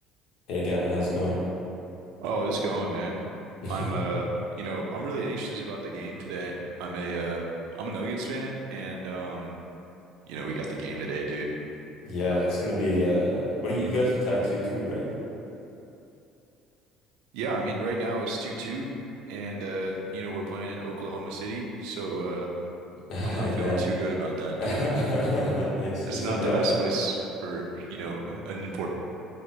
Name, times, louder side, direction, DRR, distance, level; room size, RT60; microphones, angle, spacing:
voice 1, 0.5-1.4 3.6-3.9 12.0-15.1 23.1-23.8 24.6-26.8, left 1 dB, 65° left, -6 dB, 0.9 m, -27 dB
voice 2, 2.2-3.3 3.7-4.3 4.5-7.4 7.8-9.5 10.3-11.5 17.3-18.9 19.3-22.5 23.2-24.8 26.1-27.1 27.4-28.9, right 2 dB, 80° right, 0 dB, 0.4 m, -32 dB
3.6 x 2.1 x 3.7 m, 2.8 s
supercardioid pair, 80°, 0 cm